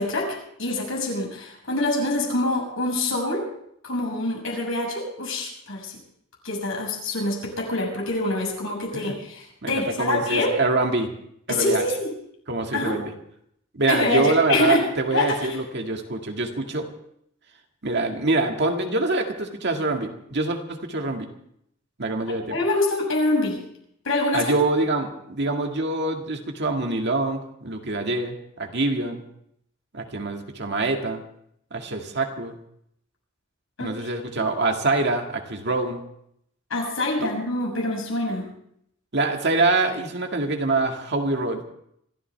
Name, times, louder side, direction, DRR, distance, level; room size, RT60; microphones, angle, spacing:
voice 1, 0.0-3.4 3.8-6.0 6.4-10.5 11.5-12.1 12.7-13.0 13.9-14.8 15.1-15.6 22.5-23.6 24.0-24.5 33.8-34.1 36.7-38.4, left 2 dB, 80° left, -1 dB, 6.7 m, -25 dB
voice 2, 9.6-11.1 11.5-11.8 12.5-13.1 13.7-16.9 17.8-21.3 22.0-22.6 24.3-29.2 29.9-31.2 31.7-32.6 33.8-36.0 37.2-37.3 39.1-41.6, right 2 dB, 60° right, 3 dB, 2.0 m, -25 dB
26.0 x 14.0 x 3.5 m, 0.71 s
head